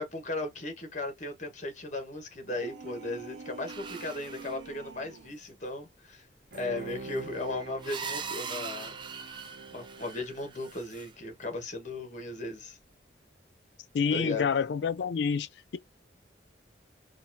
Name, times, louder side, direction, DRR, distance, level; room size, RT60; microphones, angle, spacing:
voice 1, 0.0-6.2 6.5-9.0 9.7-12.8 14.1-14.5, left 2 dB, 40° left, 1.1 m, -36 dB
sound 1, 2.4-5.4, right 4 dB, 85° right, 0.4 m, -46 dB
sound 2, 3.7-4.6 6.5-6.6 7.2-11.1, right 5 dB, 25° right, 0.4 m, -41 dB
Bowed string instrument, 6.5-11.1 11.5-11.6, right 3 dB, 60° right, 0.7 m, -46 dB
voice 2, 13.9-15.5, left 6 dB, 70° left, 0.4 m, -27 dB
3.8 x 2.3 x 2.5 m
head